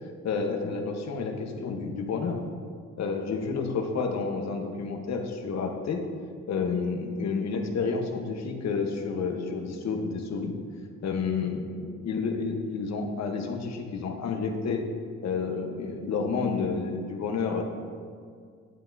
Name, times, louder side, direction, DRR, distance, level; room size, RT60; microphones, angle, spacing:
voice 1, 0.2-2.4 3.0-6.0 6.5-10.5 11.0-14.8 15.2-17.6, left 4 dB, 60° left, 4 dB, 1.1 m, -30 dB
9.9 x 9.1 x 2.7 m, 2.1 s
cardioid pair, 90°, 30 cm